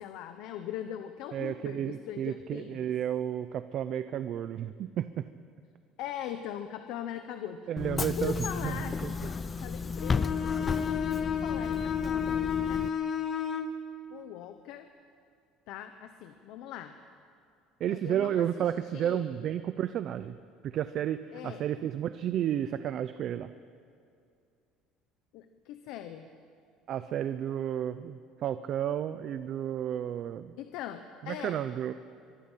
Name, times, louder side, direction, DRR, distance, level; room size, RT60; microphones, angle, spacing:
voice 1, 0.0-2.9 6.0-7.6 7.9-10.8 11.2-12.8 14.1-14.9 15.7-16.9 17.9-19.3 21.3-21.7 25.3-26.3 30.6-31.6, left 10 dB, 60° left, 8 dB, 1.0 m, -41 dB
voice 2, 1.3-5.3 7.7-8.3 8.6-8.8 9.0-9.1 17.8-20.4 20.6-23.5 26.9-30.5 31.2-31.9, right 10 dB, 35° right, 12 dB, 0.6 m, -32 dB
Bus / Engine, 7.8-12.9, left 4 dB, 15° left, 0.5 m, -33 dB
Bowed string instrument, 10.0-13.8, left 8 dB, 30° left, 1.7 m, -31 dB
24.0 x 23.5 x 5.7 m, 2.4 s
cardioid pair, 180°, 0 cm